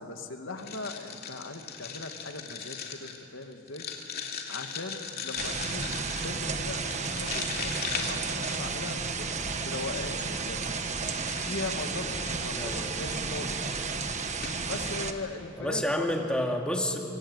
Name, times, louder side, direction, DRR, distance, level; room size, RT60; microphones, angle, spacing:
voice 1, 0.0-3.8 4.5-5.9 6.2-9.3 9.6-10.6 11.4-13.8 14.6-16.1, left 3 dB, 75° left, 5 dB, 2.2 m, -39 dB
sound 1, 0.6-9.1 9.7-12.8 13.5-13.7 14.0-14.1 14.4-14.8, left 6 dB, 50° left, 2.7 m, -39 dB
sound 2, 5.4-15.1, right 4 dB, 35° right, 1.5 m, -32 dB
voice 2, 12.5-12.9 15.6-17.0, equal, 5° left, 1 dB, 2.3 m, -29 dB
27.0 x 24.5 x 8.2 m, 2.5 s
head